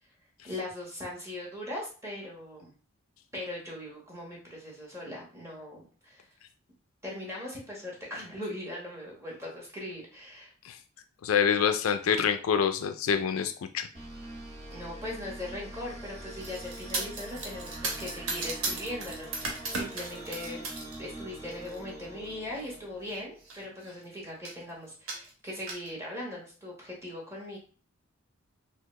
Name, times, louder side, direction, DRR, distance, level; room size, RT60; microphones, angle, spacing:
voice 1, 0.4-2.7 3.3-6.2 7.0-10.5 14.7-20.6 21.0-27.6, left 1 dB, 15° right, -3 dB, 1.3 m, -40 dB
voice 2, 11.2-13.9, left 7 dB, 75° left, 8 dB, 0.4 m, -26 dB
sound 1, 13.9-23.4, right 1 dB, 30° right, 1.4 m, -44 dB
sound 2, 16.4-21.0 21.4-21.8 22.6-22.7 23.1-23.2 23.4-24.0 24.4-24.6 25.1-25.9, right 3 dB, 85° right, 1.0 m, -36 dB
4.1 x 2.0 x 3.1 m, 0.39 s
head